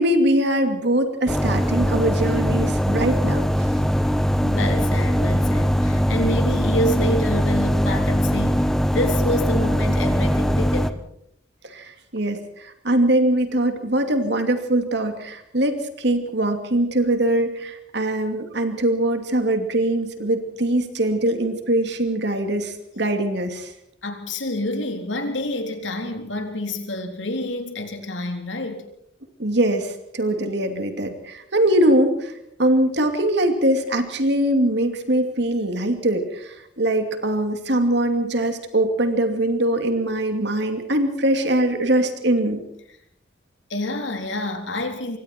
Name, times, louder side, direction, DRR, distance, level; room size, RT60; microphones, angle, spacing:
voice 1, 0.0-3.8 11.6-23.7 29.4-42.6, right 1 dB, 60° right, 7 dB, 2.7 m, -22 dB
sound 1, 1.3-10.9, equal, ahead, 1.0 m, -21 dB
voice 2, 4.3-11.1 24.0-28.8 43.7-45.2, left 1 dB, 75° left, 5 dB, 3.8 m, -28 dB
27.0 x 23.5 x 4.5 m, 0.71 s
head